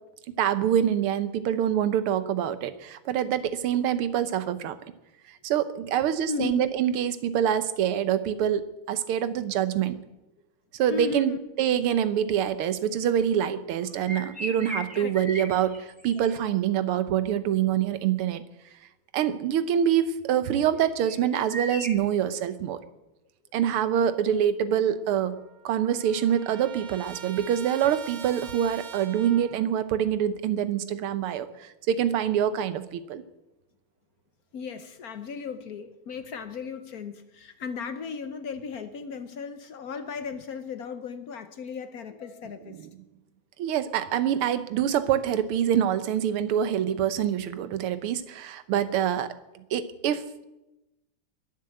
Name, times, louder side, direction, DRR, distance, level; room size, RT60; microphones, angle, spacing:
voice 1, 0.4-4.8 5.4-10.0 10.7-18.4 19.1-22.8 23.5-33.2 43.6-50.4, right 9 dB, 80° right, 13 dB, 1.8 m, -25 dB
voice 2, 6.2-6.7 10.8-11.5 14.9-15.1 16.2-16.4 34.5-42.9, left 5 dB, 60° left, 10 dB, 1.1 m, -36 dB
sound 1, 13.9-16.6 20.8-21.9, right 1 dB, 5° right, 2.1 m, -37 dB
Trumpet, 25.0-25.1 25.3-29.7, right 7 dB, 50° right, 1.2 m, -44 dB
21.5 x 7.6 x 7.7 m, 0.97 s
omnidirectional pair, 2.4 m